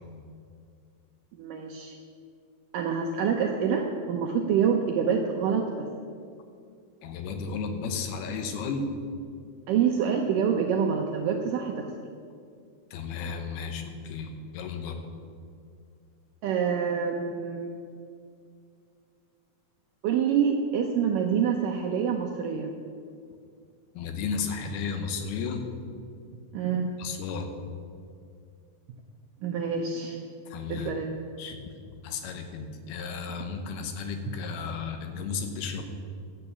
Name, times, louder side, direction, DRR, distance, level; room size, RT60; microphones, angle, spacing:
voice 1, 1.4-2.0 2.7-5.9 9.7-11.9 16.4-17.8 20.0-22.7 26.5-26.9 29.4-30.2 30.7-31.2, right 7 dB, 75° right, 2 dB, 2.0 m, -26 dB
voice 2, 7.0-8.9 12.9-15.0 24.0-25.7 27.0-27.5 30.5-30.9 31.4-31.6 32.0-35.8, left 5 dB, 85° left, 6 dB, 3.0 m, -33 dB
11.5 x 8.8 x 6.8 m, 2.3 s
omnidirectional pair, 4.5 m